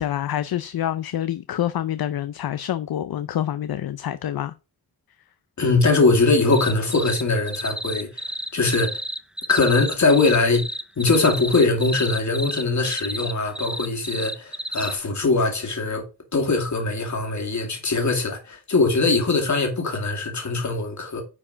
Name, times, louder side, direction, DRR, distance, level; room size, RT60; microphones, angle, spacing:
voice 1, 0.0-4.5, left 11 dB, 65° left, 0.6 m, -27 dB
voice 2, 5.6-8.3 8.5-9.0 9.5-10.6 11.0-16.0 16.3-21.2, left 3 dB, 45° left, 2.4 m, -21 dB
sound 1, 6.5-7.2 7.5-15.0, right 1 dB, ahead, 0.4 m, -31 dB
9.7 x 4.8 x 5.0 m
wide cardioid pair, 175°, 40 cm